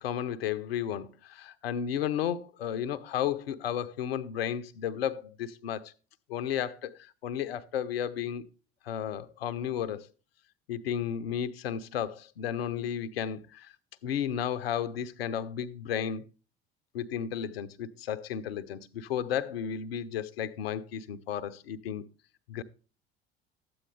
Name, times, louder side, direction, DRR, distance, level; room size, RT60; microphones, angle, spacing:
voice 1, 0.0-5.9 6.3-8.4 8.8-10.1 10.7-13.7 14.0-16.3 16.9-22.0 22.5-22.6, left 9 dB, 70° left, 0.7 m, -33 dB
13.0 x 8.7 x 3.3 m
figure-of-eight pair, 60°, 31 cm